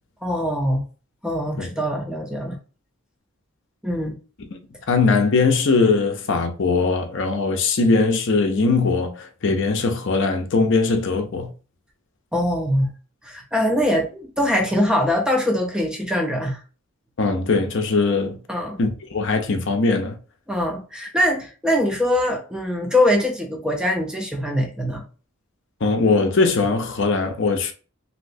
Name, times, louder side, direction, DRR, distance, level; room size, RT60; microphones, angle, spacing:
voice 1, 0.2-0.8 1.2-2.6 3.8-4.2 12.3-12.9 13.2-16.6 18.5-18.8 20.5-25.0, left 1 dB, 5° right, 0.5 m, -22 dB
voice 2, 4.9-11.5 17.2-18.4 18.8-20.2 25.8-27.7, left 3 dB, 60° left, 0.6 m, -20 dB
3.1 x 2.7 x 2.6 m
head